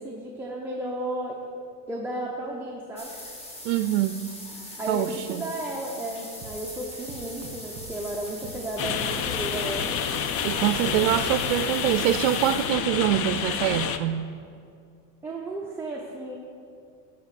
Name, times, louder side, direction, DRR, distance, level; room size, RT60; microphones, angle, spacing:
voice 1, 0.0-1.5 1.9-3.1 4.8-10.0 10.8-11.5 15.2-16.4, right 1 dB, 5° right, -3 dB, 0.7 m, -34 dB
sound 1, 3.0-13.0, left 1 dB, 15° left, 1.4 m, -41 dB
voice 2, 3.6-4.2 4.9-5.5 10.4-14.3, right 13 dB, 75° right, 10 dB, 0.5 m, -25 dB
sound 2, 6.4-11.8, right 5 dB, 40° right, 2.0 m, -44 dB
sound 3, 8.8-14.0, left 8 dB, 40° left, 0.5 m, -28 dB
12.5 x 4.3 x 7.5 m, 2.4 s
cardioid pair, 145°, 38 cm